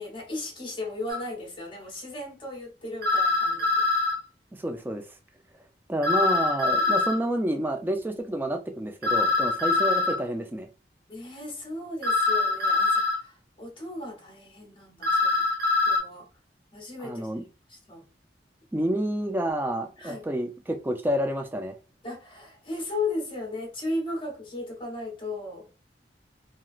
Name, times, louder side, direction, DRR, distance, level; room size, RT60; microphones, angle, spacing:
voice 1, 0.0-3.9 11.1-15.4 15.9-16.3 16.7-17.3 17.7-18.0 20.0-20.3 22.0-25.7, left 2 dB, 30° left, 0.8 m, -36 dB
sound 1, 1.1-1.2 3.0-4.2 6.0-7.2 9.0-10.2 12.0-13.2 15.0-16.0, left 3 dB, 60° right, 0.8 m, -23 dB
voice 2, 4.6-5.0 5.9-10.7 17.0-17.5 18.7-21.8, right 1 dB, 10° right, 0.3 m, -29 dB
3.0 x 2.4 x 2.3 m
head